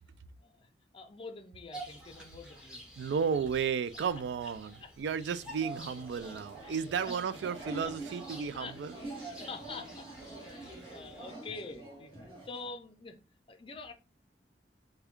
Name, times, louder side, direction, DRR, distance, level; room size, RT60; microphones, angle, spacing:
voice 1, 0.4-2.8 4.8-4.9 6.6-7.5 7.8-7.9 8.5-8.8 9.2-10.1 10.4-13.2 13.5-13.9, left 3 dB, 30° left, 0.5 m, -46 dB
Bird vocalization bird call bird song, 1.7-11.3, right 2 dB, 5° right, 0.9 m, -49 dB
voice 2, 3.0-9.0, right 6 dB, 75° right, 0.3 m, -33 dB
sound 1, 5.3-12.7, right 2 dB, 30° right, 1.9 m, -46 dB
3.4 x 2.2 x 3.6 m
head